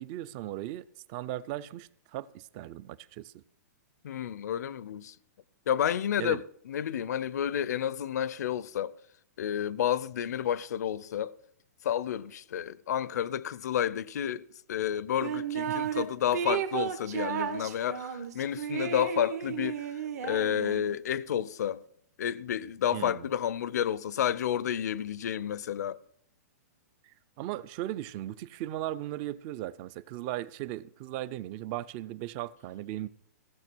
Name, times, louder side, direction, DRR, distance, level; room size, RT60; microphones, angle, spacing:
voice 1, 0.0-3.3 6.2-6.4 22.9-23.3 27.4-33.1, right 14 dB, 30° right, 0.4 m, -37 dB
voice 2, 4.0-5.2 5.7-8.9 9.4-11.3 11.8-21.8 22.2-26.0, left 10 dB, 75° left, 0.5 m, -31 dB
sound 1, 15.2-16.0 16.3-21.0, right 9 dB, 65° right, 1.3 m, -33 dB
15.5 x 6.5 x 6.1 m
hypercardioid pair, 155°, 9 cm